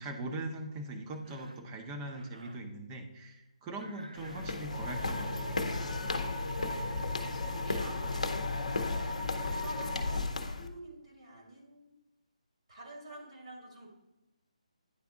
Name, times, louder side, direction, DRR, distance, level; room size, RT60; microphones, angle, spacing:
voice 1, 0.0-5.6, right 2 dB, 20° right, 3 dB, 0.8 m, -41 dB
Cough, 1.1-1.7 2.1-2.7 3.8-5.4, right 1 dB, 80° right, 0.6 m, -53 dB
sound 1, 4.2-10.7, left 3 dB, 70° left, 0.7 m, -34 dB
sound 2, 4.7-10.2, left 1 dB, 15° left, 0.7 m, -42 dB
voice 2, 7.3-8.5 8.8-11.9 12.7-13.9, right 1 dB, 60° right, -1 dB, 2.1 m, -48 dB
9.7 x 3.4 x 3.6 m, 1.0 s
figure-of-eight pair, 145°, 4 cm